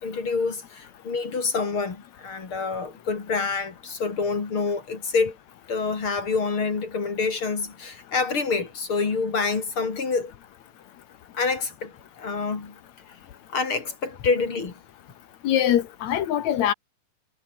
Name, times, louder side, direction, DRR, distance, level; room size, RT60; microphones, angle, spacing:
voice 1, 0.0-5.4 5.7-10.3 11.4-12.8 13.5-14.7, left 4 dB, 40° left, 3.6 m, -27 dB
voice 2, 15.4-16.7, left 10 dB, 65° left, 2.2 m, -23 dB
omnidirectional pair, 4.1 m